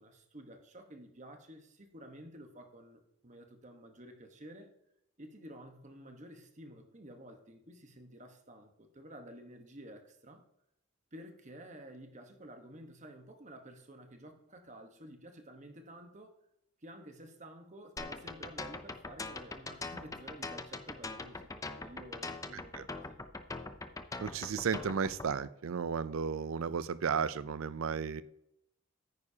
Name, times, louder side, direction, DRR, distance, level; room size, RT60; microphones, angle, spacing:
voice 1, 0.0-4.7 5.2-10.5 11.1-16.4 16.8-23.2, right 1 dB, 35° right, 5 dB, 1.2 m, -51 dB
sound 1, 18.0-25.3, left 3 dB, 15° left, 0.5 m, -42 dB
voice 2, 24.2-28.2, right 6 dB, 70° right, 16 dB, 0.5 m, -34 dB
9.6 x 9.6 x 2.8 m, 0.80 s
head